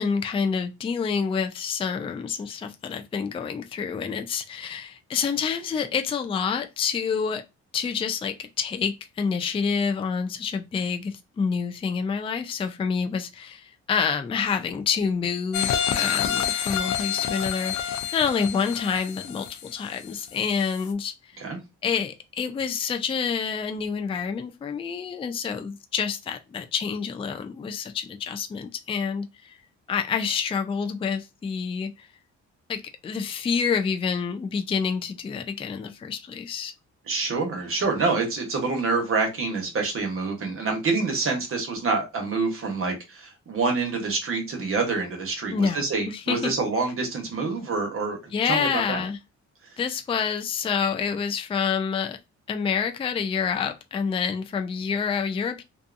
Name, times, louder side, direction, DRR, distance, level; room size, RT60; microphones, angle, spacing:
voice 1, 0.0-7.4 7.7-21.1 21.8-29.6 29.9-32.1 32.7-36.7 45.5-46.5 48.3-49.2 49.8-52.2 52.5-55.6, left 6 dB, 20° left, 0.3 m, -28 dB
sound 1, 15.5-20.3 20.7-20.8, left 9 dB, 75° left, 0.5 m, -28 dB
voice 2, 37.1-48.2 48.4-49.0, right 4 dB, 45° right, 1.0 m, -27 dB
2.6 x 2.3 x 2.5 m
cardioid pair, 90°, 30 cm